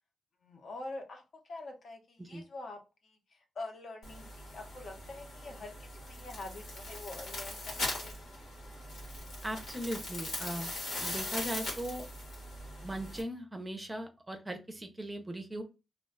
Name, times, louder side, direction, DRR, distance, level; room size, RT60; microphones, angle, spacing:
voice 1, 0.4-8.2, left 2 dB, 60° left, 3 dB, 0.7 m, -45 dB
sound 1, 4.0-13.2, left 1 dB, 90° left, 1.2 m, -40 dB
voice 2, 9.4-10.7 11.0-12.1 12.8-15.6, right 1 dB, 15° right, 6 dB, 0.5 m, -39 dB
2.4 x 2.2 x 3.5 m, 0.29 s
wide cardioid pair, 135°, 0 cm